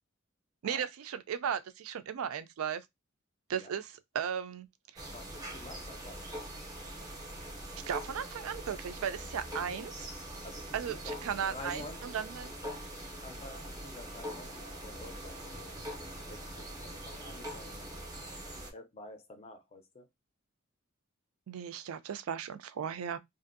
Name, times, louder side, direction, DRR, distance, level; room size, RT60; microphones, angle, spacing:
voice 1, 0.6-2.8 3.5-4.7 4.9-5.0 7.9-10.1 10.7-12.5 21.5-23.2, right 8 dB, 75° right, 0.4 m, -36 dB
sound 1, 5.0-18.7, right 1 dB, 20° right, 0.6 m, -43 dB
voice 2, 5.1-6.2 10.4-11.2 11.4-12.2 12.4-12.8 13.2-15.8 16.3-18.1 18.7-20.1, left 1 dB, 30° left, 0.5 m, -49 dB
2.5 x 2.5 x 2.5 m
head